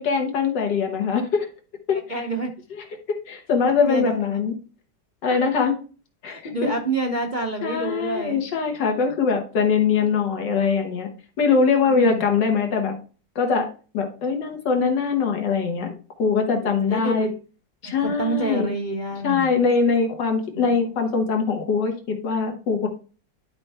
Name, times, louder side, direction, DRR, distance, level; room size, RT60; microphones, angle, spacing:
voice 1, 0.0-1.5 1.9-2.3 3.3-4.5 5.2-5.7 6.2-6.7 7.6-11.1 11.4-12.9 13.4-13.7 13.9-17.3 17.8-18.7 19.2-22.9, left 5 dB, 85° left, 3 dB, 1.9 m, -22 dB
voice 2, 2.1-2.5 3.8-4.1 5.3-5.4 6.3-8.4 11.9-12.2 16.9-17.4 17.8-19.5, right 2 dB, 45° right, 1 dB, 0.6 m, -28 dB
11.0 x 4.3 x 3.4 m, 0.37 s
omnidirectional pair, 1.9 m